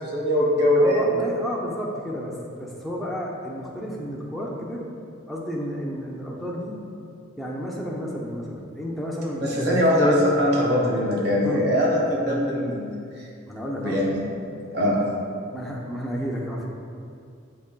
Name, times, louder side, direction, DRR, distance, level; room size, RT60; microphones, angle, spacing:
voice 1, 0.0-1.1 9.4-13.3 13.8-14.2 14.7-15.0, left 1 dB, 55° right, -4 dB, 1.0 m, -21 dB
voice 2, 0.8-4.8 5.3-6.7 7.4-9.8 11.4-11.7 13.5-14.0 15.5-16.7, equal, ahead, -5 dB, 0.5 m, -31 dB
7.5 x 3.1 x 2.2 m, 2.4 s
head